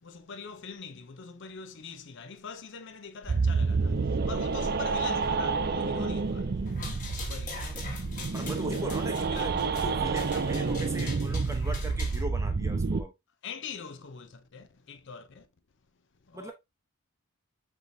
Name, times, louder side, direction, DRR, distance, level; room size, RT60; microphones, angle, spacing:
voice 1, 0.0-6.6 7.1-7.7 9.1-9.7 13.4-15.5 16.3-16.5, left 5 dB, 55° left, 0.6 m, -43 dB
sound 1, 3.2-11.9, left 1 dB, 15° left, 1.0 m, -45 dB
sound 2, 3.3-13.0, right 4 dB, 45° right, 0.4 m, -29 dB
sound 3, 6.7-12.2, left 4 dB, 35° left, 1.5 m, -43 dB
voice 2, 8.3-13.1 16.3-16.5, right 1 dB, 15° right, 0.8 m, -38 dB
4.9 x 4.0 x 2.6 m
head